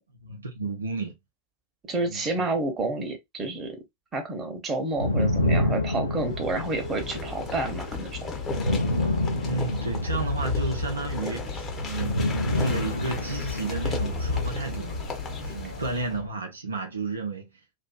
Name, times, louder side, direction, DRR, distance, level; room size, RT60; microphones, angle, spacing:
voice 1, 0.2-1.1 2.1-2.4 9.4-15.0 15.4-17.5, right 3 dB, 75° right, 0.5 m, -32 dB
voice 2, 1.8-3.8 4.1-8.3, right 2 dB, 20° right, 0.8 m, -29 dB
sound 1, 4.9-16.3, left 2 dB, 80° left, 0.4 m, -29 dB
sound 2, 6.2-16.2, left 4 dB, 20° left, 0.6 m, -37 dB
2.5 x 2.4 x 2.2 m
figure-of-eight pair, 90°, 0 cm